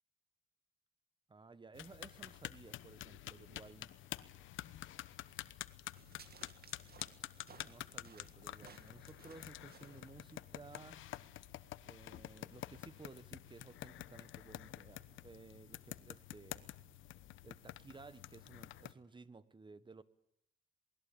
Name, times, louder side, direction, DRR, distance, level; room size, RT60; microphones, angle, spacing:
voice 1, 1.3-3.9 7.6-11.0 11.8-16.7 17.4-20.0, right 4 dB, 25° right, 15 dB, 1.4 m, -56 dB
sound 1, 1.7-18.9, left 13 dB, 80° left, 1.0 m, -49 dB
sound 2, 5.9-11.0, right 6 dB, 50° right, 2.6 m, -61 dB
27.5 x 20.0 x 8.8 m, 0.78 s
cardioid pair, 90°, 20 cm